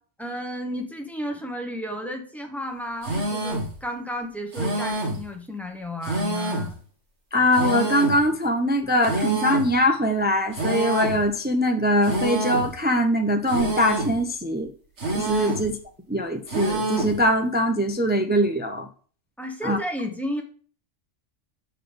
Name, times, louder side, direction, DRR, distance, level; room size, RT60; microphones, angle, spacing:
voice 1, 0.2-6.8 15.4-15.5 19.4-20.4, equal, ahead, 3 dB, 0.9 m, -33 dB
sound 1, 3.0-3.7 4.5-5.2 6.0-6.7 7.5-8.2 9.0-9.7 10.5-11.2 12.0-12.7 13.5-14.2 15.0-15.7 16.5-17.2, right 1 dB, 60° right, 2.1 m, -27 dB
voice 2, 7.3-14.7 15.1-15.8 16.1-18.9 19.6-19.8, equal, 15° right, 5 dB, 0.3 m, -22 dB
6.5 x 3.9 x 5.1 m, 0.43 s
omnidirectional pair, 1.3 m